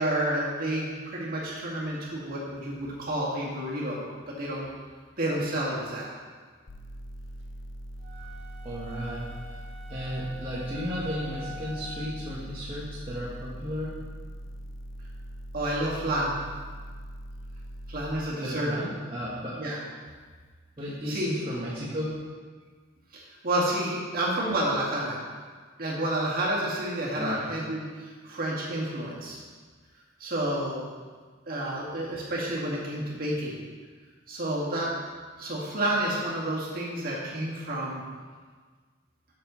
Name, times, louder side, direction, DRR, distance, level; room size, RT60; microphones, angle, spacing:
voice 1, 0.0-4.7 5.2-6.1 15.5-16.4 17.9-18.7 19.6-19.8 21.1-21.4 23.1-25.2 25.8-29.4 30.2-30.8 31.5-33.6 34.3-34.9 35.4-38.0, right 1 dB, 45° right, -5 dB, 2.1 m, -30 dB
sound 1, 6.7-18.1, equal, 70° left, 0.7 m, -41 dB
sound 2, 8.0-12.3, left 1 dB, 70° right, 1.6 m, -46 dB
voice 2, 8.6-9.6 9.9-14.0 18.4-19.6 20.8-22.2 27.1-27.4, equal, 30° right, -8 dB, 1.3 m, -34 dB
6.7 x 6.7 x 5.7 m, 1.5 s
head